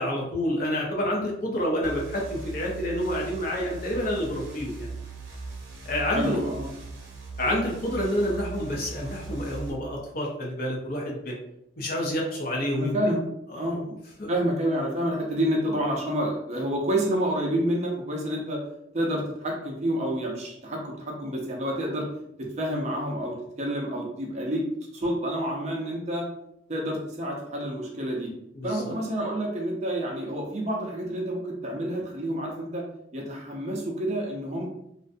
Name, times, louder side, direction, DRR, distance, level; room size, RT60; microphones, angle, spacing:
voice 1, 0.0-4.9 5.8-6.5 7.4-11.3 11.8-12.9 13.5-14.3 28.6-28.9, equal, 45° left, -2 dB, 0.6 m, -28 dB
sound 1, 1.8-9.7, right 3 dB, 75° right, 0.7 m, -39 dB
voice 2, 6.1-6.7 12.7-13.3 13.5-13.8 14.3-18.6 18.9-22.1 22.4-24.6 24.9-26.3 26.7-28.3 28.6-32.8 33.1-34.7, right 1 dB, 35° right, -1 dB, 0.5 m, -28 dB
2.5 x 2.1 x 2.5 m, 0.79 s
head